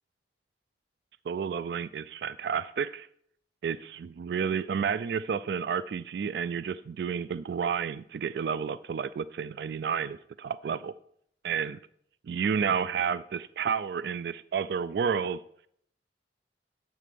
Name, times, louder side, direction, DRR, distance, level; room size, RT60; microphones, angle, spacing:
voice 1, 1.3-3.1 3.6-10.9 11.4-11.8 12.3-15.4, right 6 dB, 65° right, 16 dB, 0.3 m, -31 dB
11.0 x 4.1 x 6.8 m, 0.67 s
head